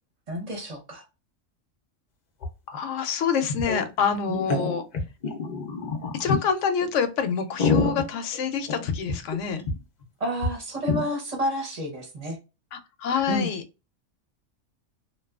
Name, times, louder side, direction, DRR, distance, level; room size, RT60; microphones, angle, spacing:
voice 1, 0.3-1.0 4.3-4.5 10.2-12.4 13.3-13.5, equal, 35° right, 0.8 m, -30 dB
sound 1, 2.4-2.5 2.7-2.8 3.4-3.8 4.3-6.3 6.8-6.9 7.3-9.3 9.6-9.7 10.0-10.1 10.4-10.5 10.9-11.0, left 4 dB, 50° left, 0.6 m, -27 dB
voice 2, 2.7-4.8 6.1-9.7 12.7-13.6, left 6 dB, 75° left, 0.9 m, -26 dB
2.6 x 2.3 x 2.3 m
omnidirectional pair, 1.3 m